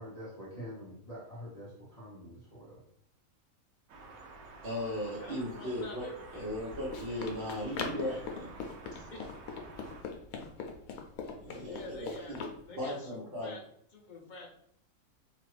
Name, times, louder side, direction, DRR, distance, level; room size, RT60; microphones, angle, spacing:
voice 1, 0.0-2.9, equal, 35° left, -9 dB, 0.9 m, -46 dB
sound 1, 3.9-10.0, right 3 dB, 80° right, 1.0 m, -51 dB
voice 2, 4.6-6.1 6.3-9.1 11.3-12.5 12.8-13.5, left 1 dB, 45° right, -6 dB, 0.9 m, -37 dB
voice 3, 5.2-6.8 8.9-9.2 9.6-9.7 11.7-13.6 13.9-14.5, left 2 dB, 55° left, -1 dB, 0.5 m, -48 dB
Run, 6.4-12.6, left 5 dB, 90° left, 1.0 m, -42 dB
2.9 x 2.4 x 3.2 m, 0.68 s
omnidirectional pair, 1.5 m